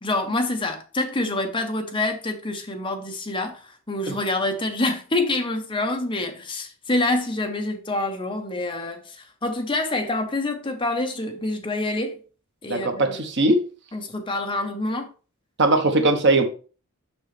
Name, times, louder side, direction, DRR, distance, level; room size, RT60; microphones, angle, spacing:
voice 1, 0.0-12.2 12.6-13.2 13.9-15.1, left 2 dB, 25° left, 1.0 m, -26 dB
voice 2, 12.7-13.6 15.6-16.5, right 2 dB, 55° right, 1.1 m, -20 dB
6.2 x 6.1 x 3.3 m
head